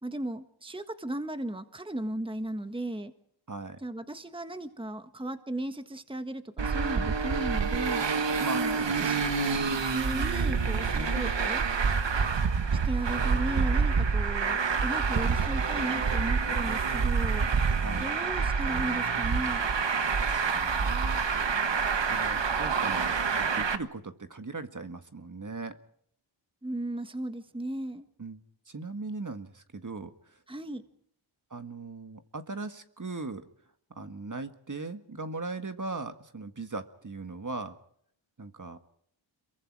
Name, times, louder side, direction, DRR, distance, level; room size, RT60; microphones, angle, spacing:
voice 1, 0.0-3.1 3.8-8.1 8.5-11.7 12.8-17.7 18.0-19.7 26.6-28.0 30.5-30.8, right 1 dB, 10° right, 9 dB, 1.5 m, -36 dB
voice 2, 3.5-3.8 8.4-9.0 9.5-9.7 10.9-11.2 17.8-18.0 20.2-21.5 22.1-25.8 28.2-28.4 28.7-30.4 31.5-33.5 34.0-37.8 38.4-38.8, right 3 dB, 40° right, 8 dB, 1.9 m, -39 dB
Traffic noise roadway noise, 6.6-23.8, right 5 dB, 65° right, 1.5 m, -27 dB
27.5 x 23.0 x 4.9 m, 0.68 s
cardioid pair, 55°, 47 cm